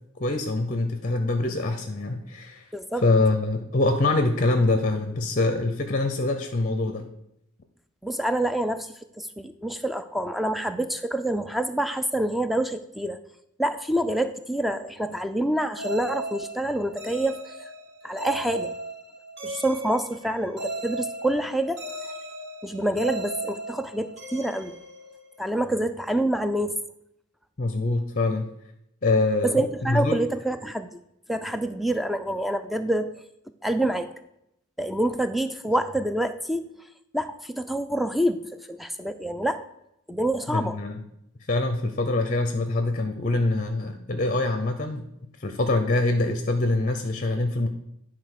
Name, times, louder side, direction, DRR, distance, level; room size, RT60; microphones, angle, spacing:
voice 1, 0.2-2.7 3.0-7.1 27.6-28.5 29.0-29.6 29.9-30.2 40.5-41.0 41.5-45.0 45.4-47.7, left 2 dB, 35° left, 7 dB, 0.6 m, -24 dB
voice 2, 2.7-3.0 8.0-13.2 13.6-17.7 18.0-18.7 19.4-21.8 22.6-24.7 25.4-26.8 29.4-30.9 31.3-33.1 33.6-34.1 34.8-36.6 37.1-39.6 40.1-40.8, right 1 dB, ahead, 10 dB, 0.4 m, -27 dB
sound 1, 15.8-25.6, right 2 dB, 50° right, 1.8 m, -37 dB
10.5 x 3.8 x 6.5 m, 0.82 s
head